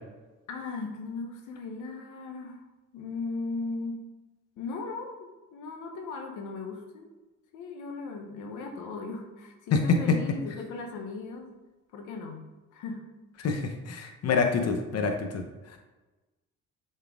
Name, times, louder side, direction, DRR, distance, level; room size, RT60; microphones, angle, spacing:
voice 1, 0.5-2.6 2.9-4.0 4.6-7.1 7.5-11.5 11.9-13.0, left 3 dB, 90° left, 3 dB, 0.9 m, -37 dB
voice 2, 13.4-15.4, left 5 dB, 55° left, 5 dB, 0.9 m, -27 dB
6.9 x 4.5 x 3.6 m, 1.1 s
cardioid pair, 90°, 30 cm